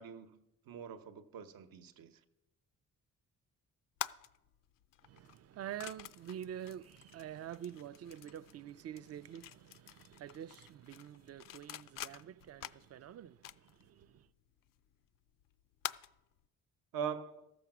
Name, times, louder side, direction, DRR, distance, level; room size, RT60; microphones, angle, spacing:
voice 1, 0.0-2.2 16.9-17.5, right 7 dB, 75° right, 1.0 m, -43 dB
sound 1, 4.0-16.5, left 12 dB, 70° left, 0.5 m, -48 dB
voice 2, 5.0-14.3, right 10 dB, 45° right, 0.4 m, -47 dB
13.5 x 7.0 x 6.0 m
cardioid pair, 100°, 35 cm